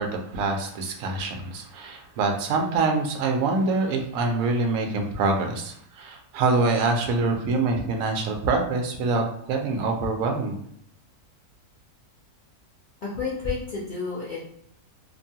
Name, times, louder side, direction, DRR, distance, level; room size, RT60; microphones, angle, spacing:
voice 1, 0.0-9.2 9.5-10.6, right 3 dB, 70° right, 3 dB, 0.9 m, -25 dB
voice 2, 13.0-14.4, left 4 dB, 80° left, -7 dB, 0.4 m, -30 dB
2.9 x 2.2 x 2.7 m, 0.69 s
omnidirectional pair, 1.6 m